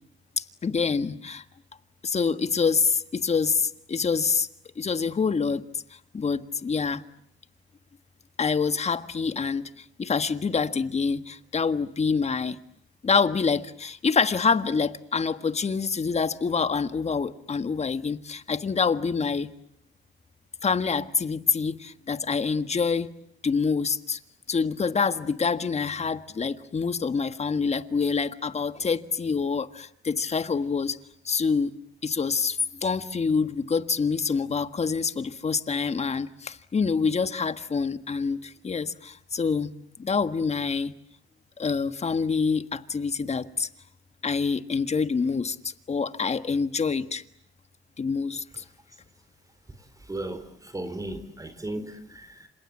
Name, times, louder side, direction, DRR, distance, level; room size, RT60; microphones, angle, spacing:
voice 1, 0.4-1.4 2.0-4.5 4.8-5.6 6.1-7.0 8.4-12.6 13.0-19.5 20.6-23.1 23.4-24.2 24.5-31.0 31.2-31.7 32.0-39.7 40.0-40.9 41.6-43.7 44.2-47.2 48.0-48.6, left 5 dB, 35° left, 1.6 m, -26 dB
voice 2, 50.1-52.5, right 1 dB, 15° right, 3.9 m, -36 dB
30.0 x 26.5 x 7.5 m
cardioid pair, 90°, 20 cm